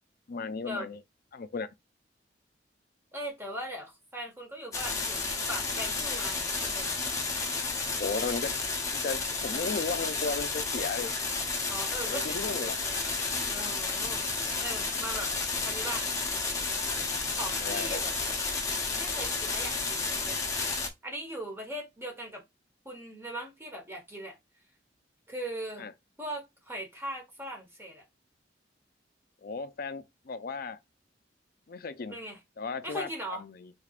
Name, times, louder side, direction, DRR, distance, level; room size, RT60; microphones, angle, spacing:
voice 1, 0.3-1.0 1.3-1.7 8.0-8.5 8.9-11.1 12.1-12.8 17.6-18.0 25.8-25.9 29.4-30.8 31.7-32.2 32.6-33.7, left 4 dB, 55° left, 0.4 m, -35 dB
voice 2, 3.1-7.0 11.7-12.8 13.5-14.2 14.6-15.3 15.6-16.1 17.3-18.1 19.0-20.4 21.0-22.4 22.8-24.4 25.3-25.9 26.2-28.0 32.1-32.4 32.8-33.4, right 1 dB, 15° right, 1.3 m, -39 dB
sound 1, 4.7-20.9, left 4 dB, 20° left, 0.8 m, -31 dB
4.0 x 3.4 x 2.4 m
head